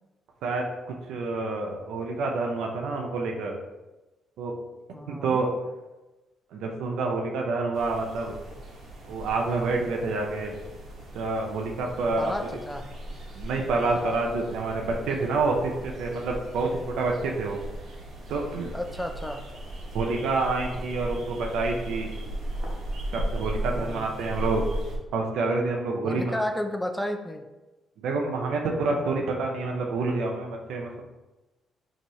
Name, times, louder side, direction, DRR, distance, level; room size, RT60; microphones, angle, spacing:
voice 1, 1.0-3.6 4.4-4.5 5.1-5.5 6.5-8.3 9.1-10.5 11.1-12.3 13.4-17.6 18.3-18.7 19.9-22.1 23.1-24.6 25.1-26.4 28.0-31.0, right 3 dB, 85° right, 1 dB, 0.5 m, -28 dB
voice 2, 4.9-5.4 12.2-12.9 18.7-19.5 23.7-24.2 26.0-27.5, left 1 dB, 5° left, 5 dB, 0.3 m, -32 dB
sound 1, 7.7-25.0, right 1 dB, 55° right, 1.0 m, -37 dB
2.8 x 2.7 x 4.2 m, 1.1 s
cardioid pair, 90°, 0 cm